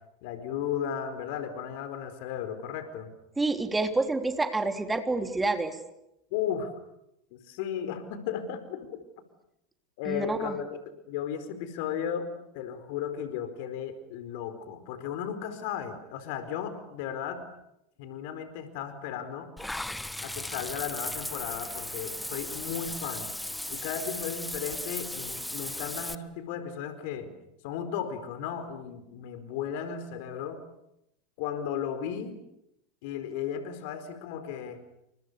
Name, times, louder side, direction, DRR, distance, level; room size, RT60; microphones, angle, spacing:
voice 1, 0.2-3.1 6.3-6.7 7.3-9.0 10.0-10.8 11.1-12.3 12.5-17.4 18.0-19.5 20.2-23.3 23.7-27.3 27.6-30.6 31.4-32.4 33.0-34.8, left 8 dB, 60° left, 10 dB, 4.6 m, -35 dB
voice 2, 3.4-5.8 10.0-10.5, right 3 dB, 10° right, 6 dB, 3.4 m, -28 dB
Water / Bathtub (filling or washing), 19.6-26.1, left 1 dB, 5° left, 1.2 m, -36 dB
30.0 x 27.5 x 6.9 m, 0.82 s
hypercardioid pair, 90°, 0 cm